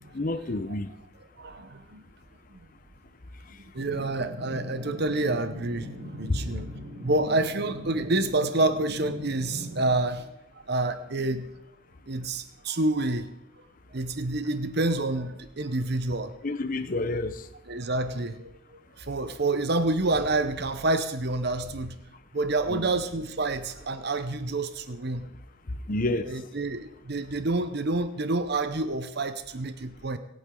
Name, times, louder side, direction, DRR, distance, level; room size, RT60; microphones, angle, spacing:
voice 1, 0.1-0.9 6.3-6.4 16.4-17.4 22.7-22.9 25.9-26.3, left 2 dB, 40° left, 0.7 m, -28 dB
voice 2, 1.4-2.0 2.5-2.6 3.7-6.7 7.0-10.3 10.7-11.5 12.1-13.3 13.6-13.7 13.9-16.3 17.7-18.5 19.0-22.0 22.3-25.3 26.2-30.2, right 2 dB, 50° right, 0.9 m, -28 dB
sound 1, 3.8-9.9, equal, 90° right, 3.9 m, -40 dB
25.0 x 8.9 x 3.8 m
head